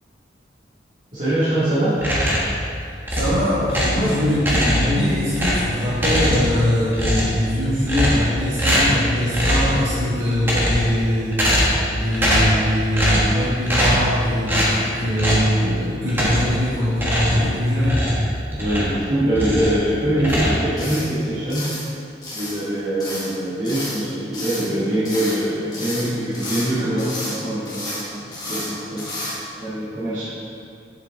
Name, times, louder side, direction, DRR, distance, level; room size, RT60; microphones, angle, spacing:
voice 1, 1.1-2.0 18.5-21.6 22.3-30.2, right 1 dB, 40° right, -15 dB, 2.0 m, -23 dB
sound 1, 2.0-2.6 3.1-4.1 4.4-5.0 5.3-6.6 6.9-7.4 7.9-8.3 8.6-9.0 9.3-9.8 10.3-10.9 11.3-11.9 12.1-12.6 12.9-13.3 13.7-14.1 14.5-14.7 15.2-15.5 16.1-16.6 16.9-19.0 19.3-19.8 20.2-21.0, equal, 10° right, 1.3 m, -21 dB
voice 2, 2.8-11.4 11.9-18.1, left 1 dB, 80° right, -10 dB, 1.7 m, -22 dB
sound 2, 20.3-20.4 20.8-21.1 21.5-21.9 22.2-22.6 23.0-23.3 23.6-24.0 24.3-24.7 25.0-25.4 25.7-26.7 27.0-27.4 27.6-28.0 28.3-28.7 29.0-29.3, left 1 dB, 20° left, 1.7 m, -31 dB
7.5 x 7.4 x 3.6 m, 2.5 s
head